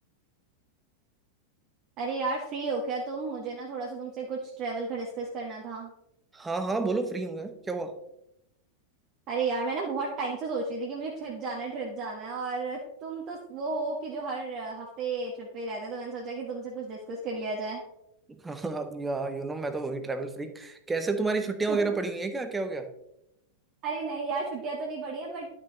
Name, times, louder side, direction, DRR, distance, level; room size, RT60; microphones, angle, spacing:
voice 1, 2.0-5.9 9.3-17.8 21.7-21.9 23.8-25.6, right 3 dB, 35° right, -2 dB, 1.2 m, -33 dB
voice 2, 6.3-8.0 18.3-22.9, right 3 dB, 10° right, 9 dB, 0.8 m, -30 dB
11.0 x 6.1 x 3.1 m, 0.83 s
figure-of-eight pair, 90°, 0 cm